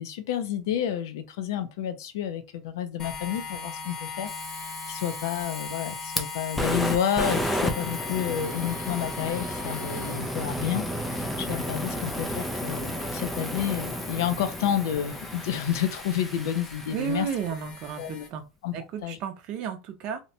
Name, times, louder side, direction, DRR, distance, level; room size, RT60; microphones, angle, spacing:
voice 1, 0.0-4.3 4.9-17.3 18.0-18.3 18.6-18.7 19.0-19.2, left 9 dB, 80° left, 0.5 m, -30 dB
sound 1, 3.0-18.3, left 5 dB, 30° left, 0.8 m, -40 dB
Fire, 4.3-17.4, equal, 5° left, 0.3 m, -33 dB
voice 2, 16.9-18.4 18.7-20.2, right 7 dB, 45° right, 0.6 m, -33 dB
2.7 x 2.1 x 2.7 m
supercardioid pair, 150°, 2 cm